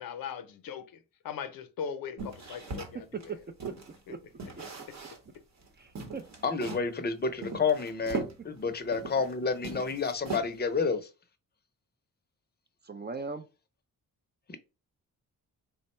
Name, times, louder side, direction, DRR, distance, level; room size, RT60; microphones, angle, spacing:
voice 1, 0.0-3.3 4.1-4.2 4.9-5.0, left 7 dB, 75° left, 0.6 m, -40 dB
sound 1, 2.2-4.0 4.4-5.4 5.6-5.7 6.0-6.9 7.4-9.3 9.6-10.8, right 4 dB, 50° right, 0.9 m, -39 dB
voice 2, 2.9-3.8 4.1-4.2 4.5-4.6 5.8-6.3 8.1-8.2 12.8-13.5, right 4 dB, 30° right, 0.4 m, -39 dB
voice 3, 6.4-11.1 14.5-14.6, left 5 dB, 30° left, 0.5 m, -30 dB
3.5 x 2.1 x 4.2 m
cardioid pair, 95°, 35 cm